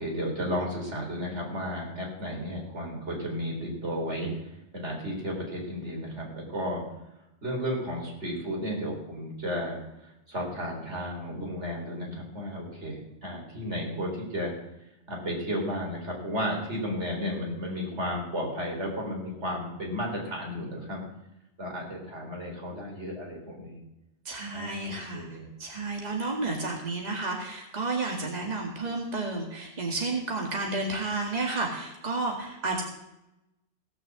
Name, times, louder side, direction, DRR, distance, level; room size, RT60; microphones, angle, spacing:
voice 1, 0.0-6.8 7.4-14.5 15.1-21.0 21.6-23.8 24.5-25.5, equal, 75° right, -1 dB, 3.8 m, -33 dB
voice 2, 24.3-32.8, right 3 dB, 35° right, 0 dB, 2.0 m, -31 dB
16.5 x 6.6 x 7.6 m, 0.91 s
omnidirectional pair, 1.2 m